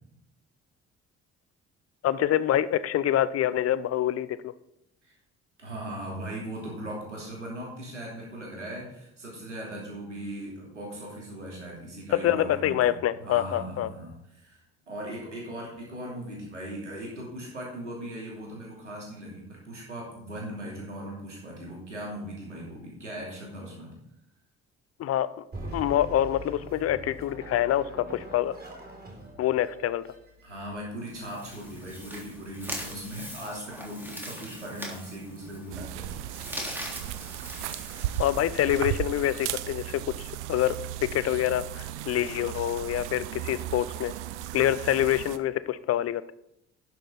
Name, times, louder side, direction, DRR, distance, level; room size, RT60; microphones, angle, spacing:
voice 1, 2.0-4.5 12.2-13.9 25.0-25.3 25.7-28.6 29.4-30.0 38.2-40.8 41.0-44.1 44.5-46.3, left 12 dB, 45° left, 16 dB, 0.6 m, -26 dB
voice 2, 5.6-12.9 13.2-14.6 14.9-23.9 30.4-36.8, right 1 dB, 90° right, -3 dB, 2.8 m, -39 dB
sound 1, 25.5-31.0, right 1 dB, 25° right, 3.5 m, -42 dB
sound 2, 31.0-38.7, equal, 5° right, 3.3 m, -41 dB
sound 3, 35.7-45.4, right 13 dB, 75° right, 0.6 m, -36 dB
11.5 x 6.3 x 5.4 m, 0.79 s
figure-of-eight pair, 50°, 35 cm